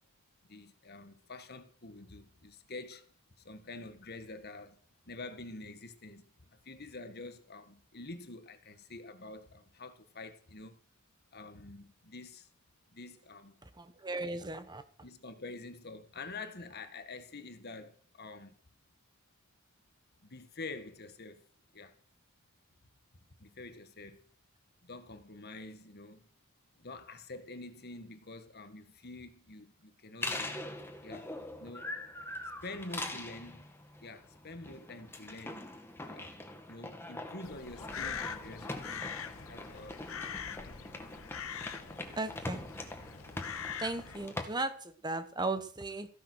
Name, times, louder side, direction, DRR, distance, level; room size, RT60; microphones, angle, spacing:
voice 1, 0.5-3.1 3.4-4.8 5.1-10.8 11.3-12.5 12.9-13.6 15.0-18.6 20.2-21.5 21.7-22.0 23.4-24.2 24.8-26.3 26.8-30.6 31.0-31.3 31.6-31.9 32.6-33.7 34.0-35.7 36.0-36.4 36.7-39.0 39.5-40.6, left 3 dB, 45° left, 1.7 m, -47 dB
voice 2, 13.8-14.8 42.1-42.6 43.8-46.1, right 2 dB, 20° right, 1.2 m, -36 dB
sound 1, 30.2-44.5, left 1 dB, 10° left, 1.9 m, -43 dB
Crow, 37.4-44.3, left 7 dB, 65° left, 1.1 m, -43 dB
15.5 x 10.5 x 6.3 m
head